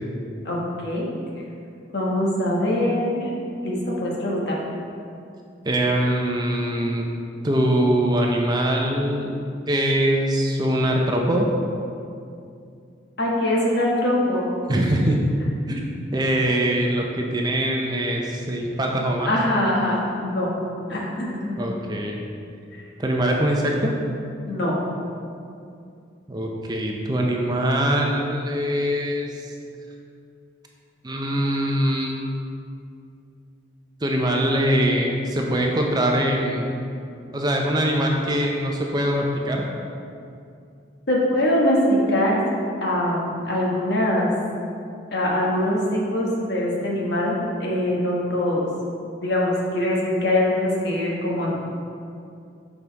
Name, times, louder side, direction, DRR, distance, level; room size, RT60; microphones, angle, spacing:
voice 1, 0.4-1.1 1.9-3.3 3.6-4.6 13.2-14.5 19.2-20.5 20.9-21.4 24.5-24.7 41.1-42.4 42.8-44.3 45.1-48.7 49.2-51.8, left 1 dB, 65° left, -4 dB, 1.3 m, -23 dB
voice 2, 5.6-7.1 7.4-9.3 9.7-11.5 14.7-15.2 15.7-19.3 21.6-22.2 23.0-23.9 26.3-29.3 31.0-32.1 34.0-36.8 37.3-39.6, right 1 dB, 20° right, 0 dB, 0.5 m, -22 dB
6.0 x 5.3 x 4.0 m, 2.5 s
head